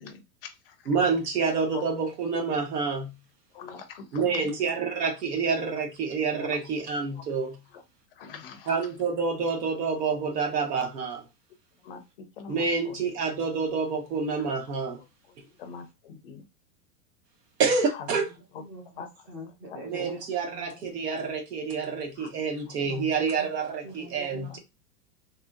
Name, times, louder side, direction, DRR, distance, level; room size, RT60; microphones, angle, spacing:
voice 1, 0.0-0.9 1.7-1.8 3.5-4.5 7.1-7.2 7.7-7.8 8.2-8.7 11.8-13.0 15.6-16.4 17.9-18.1 19.0-19.1 19.7-20.1 22.2-22.3 22.7-22.8, left 6 dB, 40° left, 0.4 m, -43 dB
voice 2, 0.9-3.2 4.1-7.6 8.7-11.2 12.5-15.0 15.4-15.5 17.6-18.3 19.8-24.6, right 5 dB, 85° right, 1.2 m, -28 dB
voice 3, 18.6-20.9 22.8-23.5 23.8-24.6, equal, 15° right, 0.4 m, -43 dB
3.0 x 2.7 x 2.3 m
supercardioid pair, 175°, 47 cm